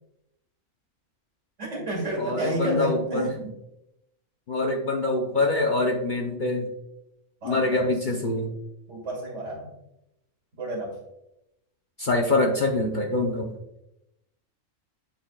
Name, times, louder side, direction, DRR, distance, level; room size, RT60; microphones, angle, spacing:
voice 1, 1.6-3.5 7.4-7.9 8.9-9.7 10.6-11.0, right 1 dB, 65° right, -1 dB, 2.4 m, -30 dB
voice 2, 2.2-3.4 4.5-6.7 7.4-8.5 12.0-13.5, left 2 dB, 45° left, 1 dB, 0.7 m, -25 dB
9.5 x 4.3 x 2.3 m, 0.86 s
omnidirectional pair, 1.3 m